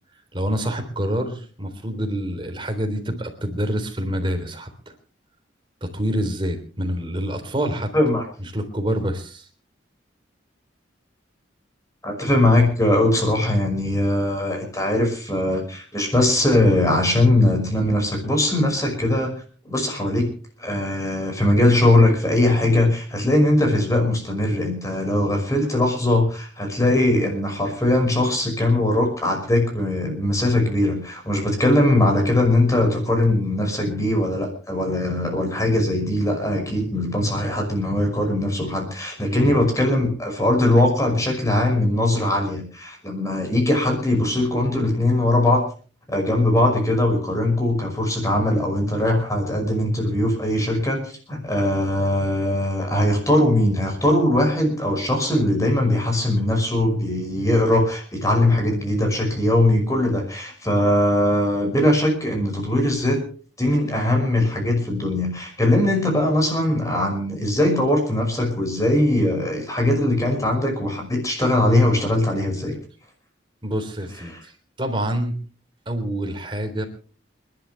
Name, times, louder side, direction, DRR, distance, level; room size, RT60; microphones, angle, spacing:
voice 1, 0.3-4.7 5.8-7.9 8.4-9.5 39.3-39.5 73.6-74.5 74.8-75.4 75.9-76.8, equal, 25° right, 6 dB, 3.5 m, -26 dB
voice 2, 7.9-8.2 12.0-19.3 19.6-20.3 20.6-45.6 46.1-51.0 51.3-63.2 63.6-72.7 74.3-74.4, left 1 dB, 15° left, 2 dB, 5.8 m, -20 dB
30.0 x 12.0 x 3.4 m, 0.40 s
head